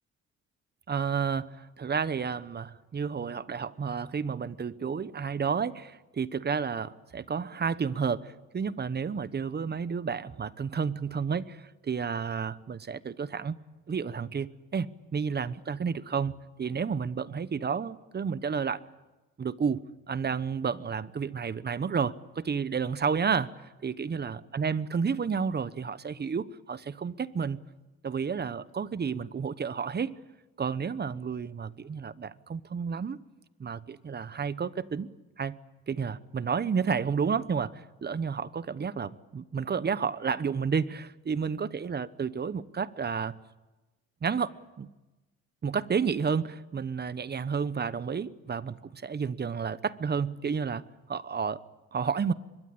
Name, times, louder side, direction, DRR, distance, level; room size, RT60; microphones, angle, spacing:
voice 1, 0.9-13.6 13.9-16.3 16.6-18.8 19.4-23.5 23.8-27.6 28.0-30.2 30.6-33.2 33.6-35.1 35.4-35.6 35.9-43.4 44.2-44.9 45.6-50.8 51.1-51.6 51.9-52.3, right 6 dB, 35° right, 1.0 m, -31 dB
24.5 x 22.0 x 8.7 m
cardioid pair, 90°, 30 cm